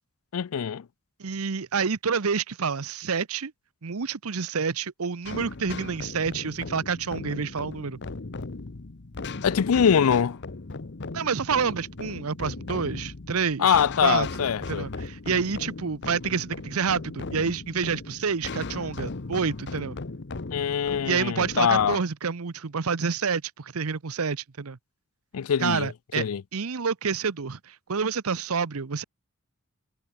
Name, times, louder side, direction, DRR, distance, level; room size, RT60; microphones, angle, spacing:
voice 1, 0.3-0.8 9.4-10.4 13.6-14.9 20.5-22.0 25.3-25.9 26.2-26.4, left 7 dB, 75° left, 0.4 m, -23 dB
voice 2, 1.2-3.5 3.8-8.0 11.1-14.3 14.7-20.0 21.1-24.8 25.6-26.2 26.5-29.0, right 5 dB, 80° right, 0.8 m, -28 dB
sound 1, 5.2-22.0, left 3 dB, 55° left, 0.9 m, -37 dB
head